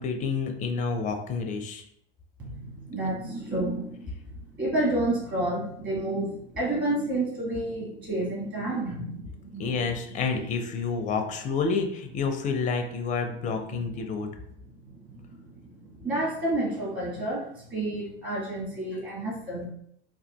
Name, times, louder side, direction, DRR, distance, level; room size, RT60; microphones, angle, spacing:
voice 1, 0.0-1.8 9.6-14.3, left 5 dB, 25° left, 5 dB, 0.4 m, -29 dB
voice 2, 2.4-4.0 4.6-9.6 13.7-13.8 15.1-15.4 15.8-17.4 17.7-19.7, right 1 dB, 25° right, -4 dB, 1.5 m, -30 dB
3.6 x 2.3 x 2.2 m, 0.68 s
figure-of-eight pair, 80°, 34 cm